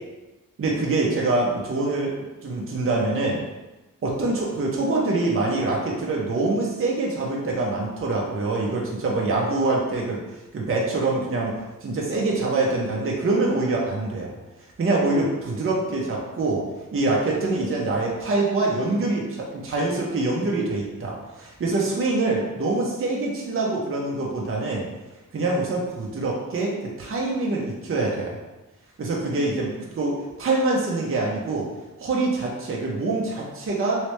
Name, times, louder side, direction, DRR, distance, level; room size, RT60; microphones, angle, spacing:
voice 1, 0.6-2.1 2.4-3.4 4.0-11.5 11.8-14.3 14.8-16.6 16.9-24.9 25.3-28.4 29.0-31.7 32.0-34.0, right 2 dB, 40° right, -3 dB, 0.6 m, -25 dB
3.2 x 3.0 x 3.1 m, 1.1 s
wide cardioid pair, 140°, 34 cm